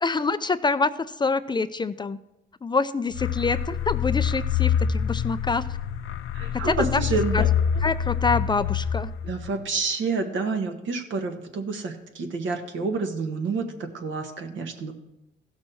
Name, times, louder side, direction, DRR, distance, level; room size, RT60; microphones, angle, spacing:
voice 1, 0.0-0.9 1.2-2.2 2.6-5.6 6.6-7.1 7.3-7.4 7.8-9.1, left 4 dB, 25° left, 13 dB, 0.4 m, -26 dB
sound 1, 3.1-9.7, left 8 dB, 90° left, 0.6 m, -26 dB
voice 2, 6.3-7.5 9.2-13.7 13.9-14.9, right 4 dB, 70° right, 5 dB, 1.5 m, -28 dB
15.5 x 6.2 x 4.3 m, 0.92 s
cardioid pair, 90°, 20 cm